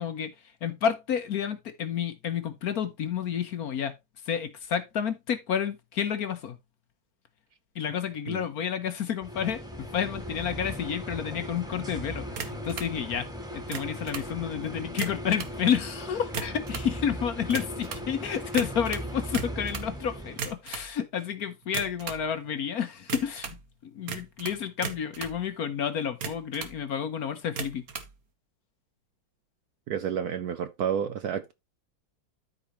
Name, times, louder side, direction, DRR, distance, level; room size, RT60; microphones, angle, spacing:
voice 1, 0.0-3.9 4.2-6.6 7.7-13.3 13.5-27.8, left 8 dB, 60° left, 1.2 m, -30 dB
sound 1, 9.2-20.5, equal, ahead, 1.9 m, -38 dB
sound 2, 12.3-12.9 13.6-14.3 14.9-15.6 16.2-16.9 17.5-18.1 18.5-19.9 20.3-20.9 21.6-22.2 23.1-23.6 24.1-25.4 26.0-26.8 27.5-28.1, right 6 dB, 50° right, 1.5 m, -36 dB
voice 2, 29.9-31.5, right 8 dB, 70° right, 0.9 m, -30 dB
13.0 x 5.0 x 3.0 m
omnidirectional pair, 2.1 m